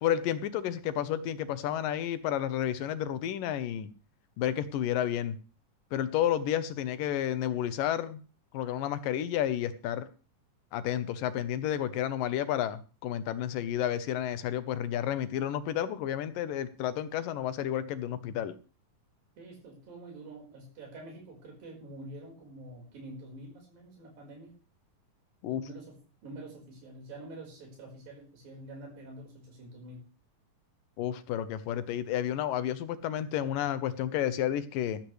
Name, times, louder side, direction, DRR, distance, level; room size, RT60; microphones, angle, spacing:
voice 1, 0.0-3.9 4.4-5.4 5.9-8.2 8.5-10.1 10.7-18.5 25.4-25.6 31.0-35.0, left 10 dB, 80° left, 13 dB, 2.7 m, -31 dB
voice 2, 19.4-24.5 25.5-30.1, right 1 dB, 90° right, -1 dB, 6.7 m, -47 dB
15.0 x 14.5 x 3.3 m, 0.35 s
omnidirectional pair, 3.9 m